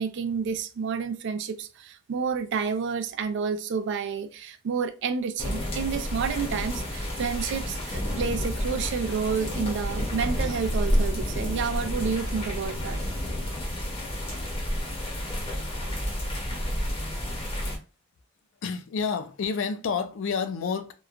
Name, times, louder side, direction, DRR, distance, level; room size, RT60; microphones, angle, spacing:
voice 1, 0.0-13.0, right 6 dB, 60° right, 0.3 m, -30 dB
sound 1, 5.4-17.8, equal, 30° left, 0.7 m, -30 dB
sound 2, 5.7-13.3, equal, 15° right, 0.7 m, -44 dB
voice 2, 18.6-20.9, left 5 dB, 65° left, 0.4 m, -29 dB
2.9 x 2.1 x 2.4 m
head